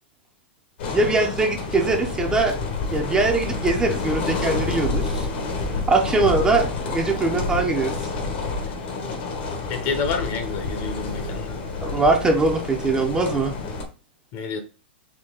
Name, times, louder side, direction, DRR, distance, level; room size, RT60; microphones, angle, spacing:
sound 1, 0.8-13.8, left 3 dB, 65° left, 1.3 m, -28 dB
voice 1, 0.9-2.5 2.9-5.3 5.9-8.1 11.8-13.5, right 3 dB, 10° right, 0.6 m, -22 dB
voice 2, 9.7-11.6 14.3-14.6, left 5 dB, 40° left, 0.9 m, -28 dB
4.4 x 2.8 x 3.8 m
hypercardioid pair, 135°, 6 cm